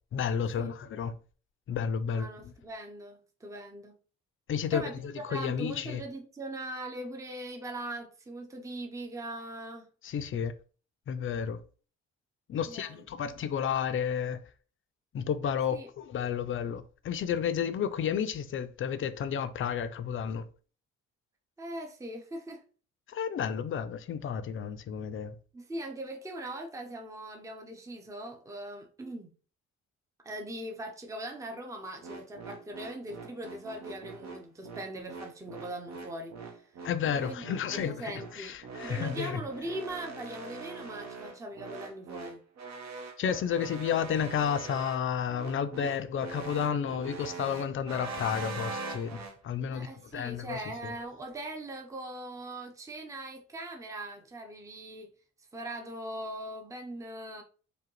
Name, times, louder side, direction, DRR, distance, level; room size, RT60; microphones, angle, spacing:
voice 1, 0.1-1.1 1.7-2.3 4.5-6.0 10.0-10.5 11.1-11.6 12.5-14.4 15.1-20.5 23.1-25.3 36.8-39.4 43.2-50.9, left 7 dB, 45° left, 0.5 m, -32 dB
voice 2, 2.1-4.0 4.7-9.9 12.7-13.3 15.7-15.9 21.6-22.6 25.5-29.3 30.2-36.8 37.1-38.6 38.8-42.4 49.7-55.1 55.5-57.4, right 1 dB, 10° right, 0.6 m, -41 dB
sound 1, 32.0-49.3, right 4 dB, 60° right, 0.9 m, -42 dB
4.9 x 2.2 x 3.0 m
cardioid pair, 90°, 30 cm